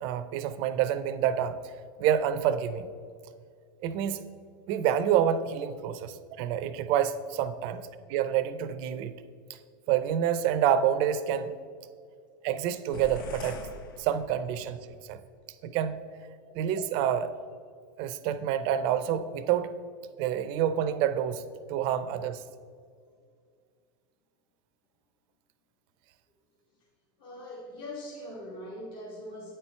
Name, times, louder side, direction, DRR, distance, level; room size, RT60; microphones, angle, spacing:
voice 1, 0.0-1.6 2.0-2.9 3.8-4.2 4.7-7.8 8.1-9.1 9.9-11.5 12.4-13.6 14.0-15.2 15.6-16.1 16.5-17.3 18.0-19.7 20.2-21.4 21.7-22.4, right 9 dB, 55° right, 11 dB, 0.5 m, -28 dB
sound 1, 12.9-14.8, left 4 dB, 85° left, 0.8 m, -43 dB
voice 2, 27.2-29.5, left 1 dB, 45° left, -4 dB, 1.4 m, -42 dB
8.9 x 4.4 x 4.4 m, 2.1 s
supercardioid pair, 120°, 11 cm